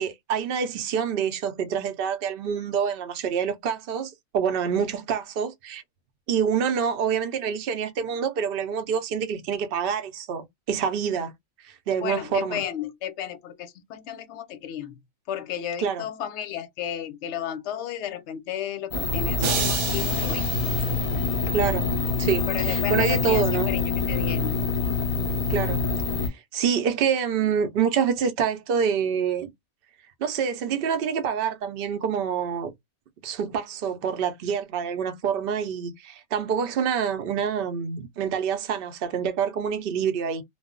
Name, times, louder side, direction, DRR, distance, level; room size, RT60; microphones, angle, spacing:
voice 1, 0.0-5.8 6.3-11.3 11.6-12.6 15.8-16.0 21.5-21.9 22.2-23.7 25.5-25.8 26.2-29.5 30.2-32.7 33.2-40.4, right 7 dB, 55° right, 0.7 m, -26 dB
voice 2, 12.0-15.0 15.3-20.5 22.5-24.6, left 9 dB, 65° left, 0.8 m, -33 dB
sound 1, 18.9-26.3, left 4 dB, 35° left, 0.7 m, -25 dB
sound 2, 19.4-21.7, right 7 dB, 80° right, 1.0 m, -32 dB
2.3 x 2.0 x 3.6 m
omnidirectional pair, 1.4 m